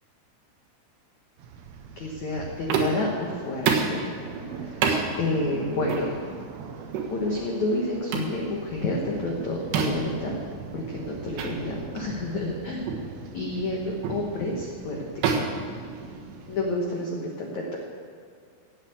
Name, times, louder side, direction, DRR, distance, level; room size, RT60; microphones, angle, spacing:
sound 1, 1.4-16.7, right 5 dB, 85° right, 3.7 m, -41 dB
voice 1, 2.0-4.8 5.2-6.1 7.1-10.3 10.7-12.9 13.3-15.0 16.5-17.8, left 2 dB, 85° left, -1 dB, 1.6 m, -29 dB
sound 2, 2.7-3.1 3.7-4.0 4.8-5.1 5.9-6.1 6.9-7.1 8.1-8.4 9.7-10.1 11.4-11.5 12.0-12.1 12.9-13.1 14.0-14.3 15.2-16.4, right 5 dB, 65° right, 3.3 m, -26 dB
17.0 x 8.3 x 8.1 m, 2.1 s
omnidirectional pair, 5.6 m